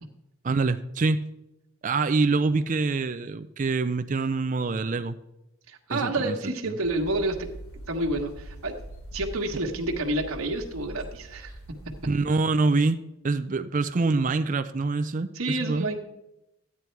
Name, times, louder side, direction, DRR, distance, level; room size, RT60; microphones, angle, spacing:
voice 1, 0.4-1.2 1.8-5.2 5.9-6.4 6.6-6.7 12.0-13.0 13.2-15.9, right 3 dB, 35° right, 11 dB, 0.4 m, -25 dB
voice 2, 5.7-7.5 7.9-8.7 9.1-11.5 15.3-16.0, right 2 dB, 70° right, 1 dB, 1.4 m, -29 dB
sound 1, 6.8-12.1, right 1 dB, 80° left, 2.7 m, -42 dB
14.0 x 9.8 x 4.6 m, 0.92 s
head